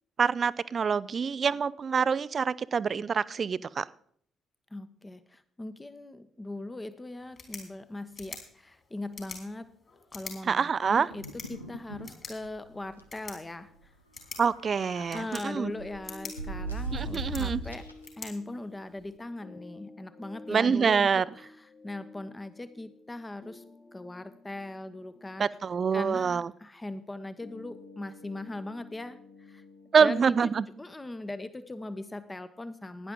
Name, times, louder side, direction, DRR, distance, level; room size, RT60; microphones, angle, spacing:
voice 1, 0.2-3.9 10.4-11.1 14.4-15.7 16.9-17.6 20.5-21.2 25.4-26.5 29.9-30.7, right 6 dB, 40° right, 19 dB, 0.5 m, -26 dB
voice 2, 4.7-9.7 10.1-13.9 15.0-17.9 18.2-23.6 23.9-25.6 25.9-29.6 30.0-30.5 30.8-33.1, left 2 dB, 20° left, 11 dB, 1.0 m, -40 dB
sound 1, 7.2-19.2, left 4 dB, 40° left, 4.2 m, -48 dB
sound 2, 11.1-12.1 12.4-12.5 12.8-13.0 14.2-15.3 15.8-18.1, right 2 dB, 90° left, 0.7 m, -38 dB
sound 3, 15.4-31.4, left 2 dB, 65° left, 4.0 m, -52 dB
17.0 x 10.5 x 3.7 m, 0.63 s
figure-of-eight pair, 45°, 0 cm